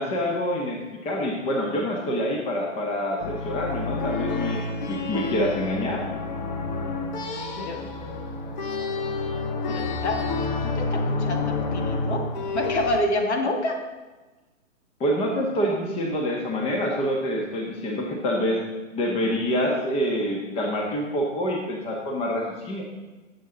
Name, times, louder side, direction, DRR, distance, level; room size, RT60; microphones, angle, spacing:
voice 1, 0.0-4.6 4.9-6.0 15.0-18.6 18.9-22.8, equal, 15° left, 0 dB, 1.5 m, -26 dB
sound 1, 3.2-13.0, left 3 dB, 35° left, 1.2 m, -29 dB
voice 2, 9.7-10.3 10.6-13.8, left 1 dB, 55° left, 4 dB, 2.1 m, -28 dB
19.5 x 7.7 x 3.9 m, 1.2 s
figure-of-eight pair, 130°, 39 cm